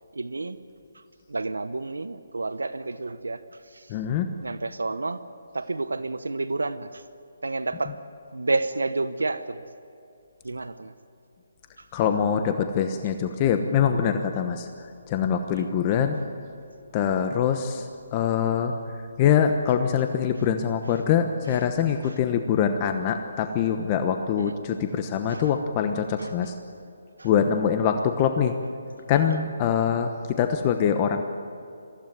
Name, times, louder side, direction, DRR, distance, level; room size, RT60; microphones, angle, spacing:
voice 1, 0.1-0.6 1.3-3.4 3.7-3.9 4.4-5.2 5.5-7.0 7.4-8.0 8.3-9.6 10.4-10.9 22.0-22.1 24.4-24.5 25.3-25.5 26.2-26.3 27.2-27.3, right 3 dB, 85° right, 13 dB, 0.9 m, -30 dB
voice 2, 3.9-4.3 11.9-14.7 15.1-16.2 16.9-17.8 18.1-18.7 19.2-26.5 27.2-28.5 29.1-30.1 30.4-31.2, left 8 dB, 30° left, 7 dB, 1.1 m, -24 dB
23.0 x 15.5 x 9.3 m, 2.5 s
figure-of-eight pair, 150°, 0 cm